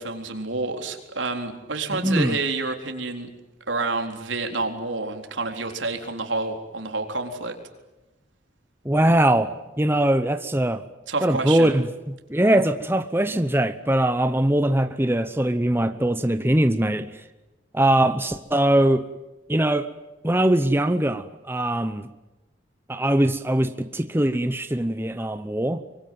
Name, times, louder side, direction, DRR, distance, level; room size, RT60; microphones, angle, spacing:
voice 1, 0.0-3.3 3.7-7.6 11.1-11.7, right 3 dB, 80° right, 4.0 m, -28 dB
voice 2, 1.9-2.4 8.8-10.8 11.2-17.2 17.7-19.0 19.5-19.9 20.2-22.1 22.9-25.8, right 1 dB, 10° right, 0.9 m, -22 dB
25.0 x 24.0 x 9.4 m
head